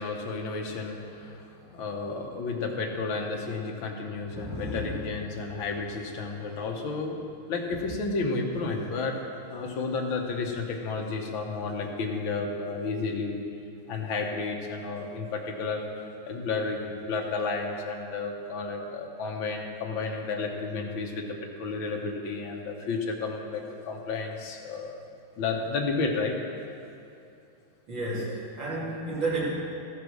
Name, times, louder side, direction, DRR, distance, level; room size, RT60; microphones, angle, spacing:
voice 1, 0.0-1.4 1.7-7.2 7.5-9.2 9.5-13.4 13.9-15.8 16.3-25.0 25.4-26.4, left 4 dB, 70° left, 1 dB, 1.9 m, -32 dB
voice 2, 4.3-5.0 27.9-29.5, right 2 dB, 60° right, -8 dB, 3.1 m, -32 dB
13.5 x 6.8 x 6.2 m, 2.6 s
omnidirectional pair, 2.3 m